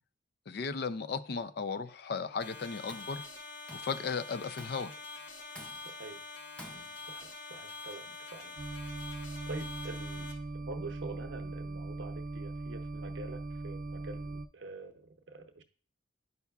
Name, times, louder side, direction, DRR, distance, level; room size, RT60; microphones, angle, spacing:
voice 1, 0.5-3.3 3.7-4.9, left 5 dB, 55° left, 13 dB, 0.4 m, -36 dB
sound 1, 2.4-10.3, left 3 dB, 75° left, 1.1 m, -45 dB
Tools, 2.9-3.2 3.7-4.0 4.6-5.0 5.5-6.1 6.6-7.1, equal, 5° left, 0.5 m, -51 dB
voice 2, 5.8-6.2 6.7-8.6 8.8-8.9 9.5-15.6, right 3 dB, 70° right, 7 dB, 0.7 m, -46 dB
sound 2, 8.6-14.5, right 2 dB, 45° right, 0.4 m, -40 dB
9.4 x 5.6 x 2.3 m, 0.43 s
head